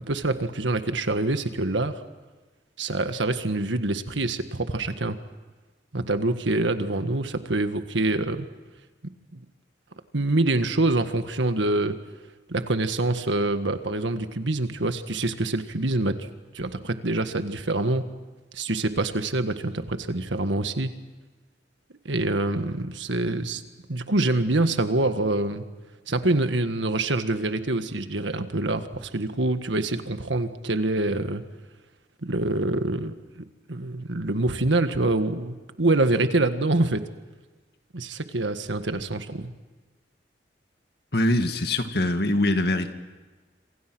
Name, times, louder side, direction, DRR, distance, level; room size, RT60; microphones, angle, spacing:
voice 1, 0.1-1.9 2.8-5.2 5.9-8.5 9.3-9.4 10.1-12.0 12.5-16.3 16.5-18.0 18.5-20.9 22.0-23.6 23.9-25.6 26.1-31.4 32.2-37.0 37.9-39.5, right 2 dB, 85° right, 9 dB, 1.7 m, -25 dB
voice 2, 41.1-42.9, left 1 dB, 60° left, 7 dB, 2.0 m, -23 dB
27.0 x 26.5 x 6.2 m, 1.3 s
head